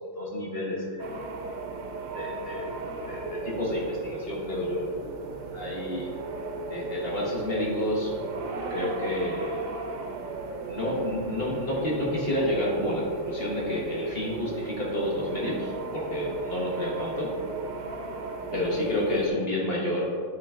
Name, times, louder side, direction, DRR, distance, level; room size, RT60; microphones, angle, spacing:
voice 1, 0.1-1.2 2.1-2.7 3.1-5.0 5.5-6.1 6.7-8.1 8.7-9.7 10.7-17.4 18.5-20.1, left 1 dB, 40° left, -4 dB, 1.0 m, -30 dB
sound 1, 1.0-19.3, right 3 dB, 70° right, 1.3 m, -36 dB
9.0 x 3.9 x 3.5 m, 2.1 s
omnidirectional pair, 2.3 m